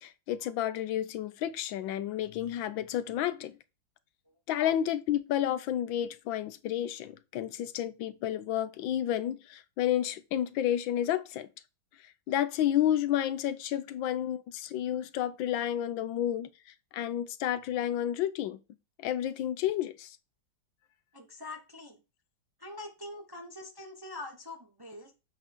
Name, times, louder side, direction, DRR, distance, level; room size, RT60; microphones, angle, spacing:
voice 1, 0.0-3.6 4.5-11.5 12.3-16.5 16.9-18.6 19.0-20.1, left 11 dB, 80° left, 1.4 m, -31 dB
voice 2, 21.1-22.0 22.6-25.1, left 2 dB, 20° right, 0.7 m, -44 dB
7.8 x 4.0 x 4.4 m
omnidirectional pair, 2.1 m